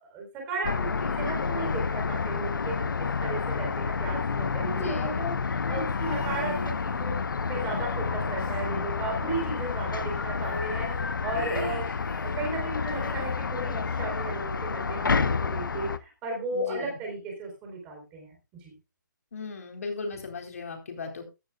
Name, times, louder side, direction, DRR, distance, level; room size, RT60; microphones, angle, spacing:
voice 1, 0.0-7.2 7.5-11.9 12.2-18.7, right 3 dB, 10° right, 1 dB, 4.0 m, -35 dB
sound 1, 0.6-16.0, left 5 dB, 85° left, 1.1 m, -29 dB
voice 2, 4.7-5.3 16.5-17.0 19.3-21.3, left 4 dB, 45° left, 4 dB, 4.2 m, -37 dB
sound 2, 5.9-7.2 7.5-9.4 9.7-9.8 10.1-12.5 12.9-14.1 15.0-15.1, left 1 dB, 10° left, 5.4 m, -42 dB
15.0 x 12.0 x 2.4 m, 0.27 s
hypercardioid pair, 175°, 11 cm